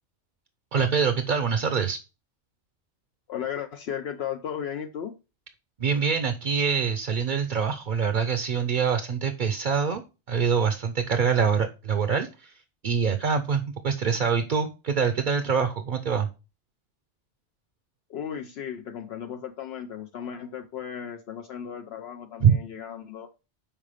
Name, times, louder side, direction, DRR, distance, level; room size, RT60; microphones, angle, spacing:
voice 1, 0.7-2.0 5.8-10.0 10.3-16.3 22.4-22.6, right 6 dB, 50° right, 8 dB, 0.7 m, -25 dB
voice 2, 3.3-5.1 18.1-23.3, left 8 dB, 70° left, 6 dB, 0.8 m, -35 dB
5.6 x 4.8 x 4.9 m, 0.30 s
omnidirectional pair, 1.2 m